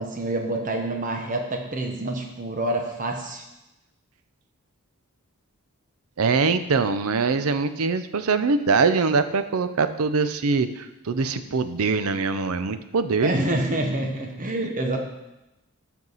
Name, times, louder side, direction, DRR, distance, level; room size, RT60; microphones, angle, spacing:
voice 1, 0.0-3.4 13.2-15.0, right 1 dB, 35° right, 3 dB, 0.9 m, -27 dB
voice 2, 6.2-13.3, right 4 dB, 75° right, 11 dB, 0.6 m, -23 dB
13.0 x 4.6 x 4.0 m, 0.94 s
head